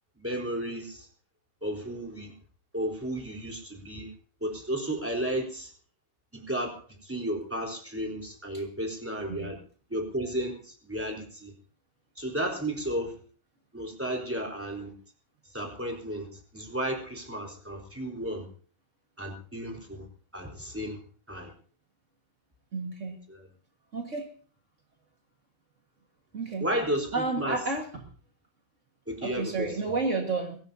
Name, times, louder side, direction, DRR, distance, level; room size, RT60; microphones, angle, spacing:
voice 1, 0.2-1.1 1.6-2.3 2.7-4.1 4.4-5.7 6.3-6.8 7.0-9.6 9.9-11.5 12.2-13.1 13.7-14.9 15.5-18.5 19.2-20.1 20.3-21.0 21.3-21.5 23.3-23.5 26.6-27.6 29.1-29.9, right 1 dB, 5° right, 1 dB, 3.3 m, -33 dB
voice 2, 22.7-23.2 23.9-24.3 26.3-26.7 27.1-27.9 29.2-30.6, right 3 dB, 55° right, 2 dB, 0.8 m, -31 dB
22.0 x 17.5 x 2.7 m, 0.42 s
omnidirectional pair, 4.2 m